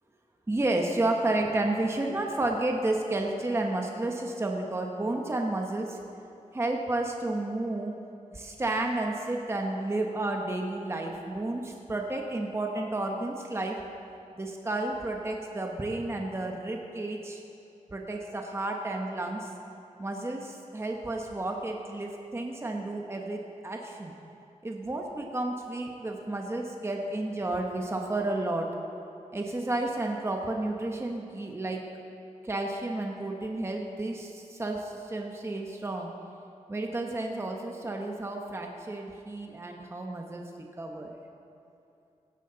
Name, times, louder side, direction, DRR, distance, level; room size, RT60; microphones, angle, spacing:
voice 1, 0.5-6.0 6.5-8.0 8.3-13.8 14.3-17.4 17.9-19.5 20.0-24.2 24.6-28.7 29.3-31.8 32.4-36.1 36.7-40.4 40.8-41.2, right 2 dB, 20° right, 1 dB, 1.0 m, -31 dB
16.5 x 12.5 x 3.9 m, 2.8 s
wide cardioid pair, 125°, 13 cm